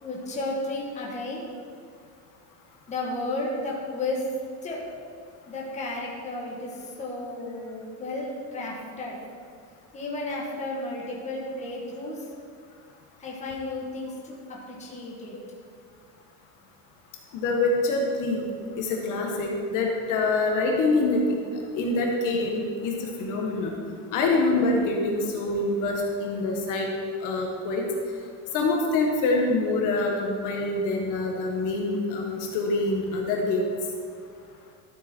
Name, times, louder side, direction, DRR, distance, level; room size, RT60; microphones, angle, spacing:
voice 1, 0.0-1.4 2.9-4.2 4.6-4.8 5.5-9.2 9.9-12.2 13.2-15.4, left 2 dB, 20° left, -3 dB, 1.6 m, -33 dB
voice 2, 17.3-18.4 18.8-21.3 21.7-23.7 24.1-26.9 27.2-27.8 28.5-33.7, left 2 dB, 50° left, 0 dB, 1.5 m, -25 dB
12.5 x 8.2 x 4.4 m, 2.2 s
cardioid pair, 175°, 39 cm